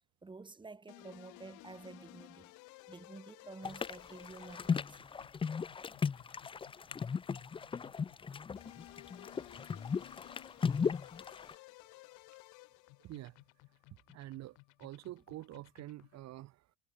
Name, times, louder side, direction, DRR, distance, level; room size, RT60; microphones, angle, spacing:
voice 1, 0.2-2.5 2.9-5.0, right 3 dB, 15° right, 2.2 m, -50 dB
sound 1, 0.9-16.2, left 25 dB, 85° left, 5.2 m, -57 dB
sound 2, 3.6-11.5, left 6 dB, 20° left, 0.4 m, -36 dB
voice 2, 10.5-10.9 11.9-12.0 13.0-13.4 14.1-16.8, right 15 dB, 60° right, 1.3 m, -48 dB
cardioid pair, 105°, 30 cm